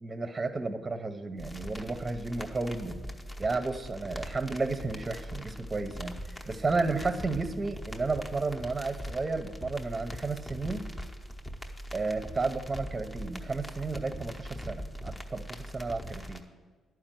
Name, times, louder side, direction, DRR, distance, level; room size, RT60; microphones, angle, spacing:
voice 1, 0.0-3.0 3.4-6.2 6.5-10.8 11.9-16.4, right 3 dB, 25° right, 9 dB, 0.7 m, -32 dB
sound 1, 1.4-16.4, equal, 20° left, 0.9 m, -41 dB
11.0 x 4.8 x 7.5 m, 1.4 s
cardioid pair, 90°, 0 cm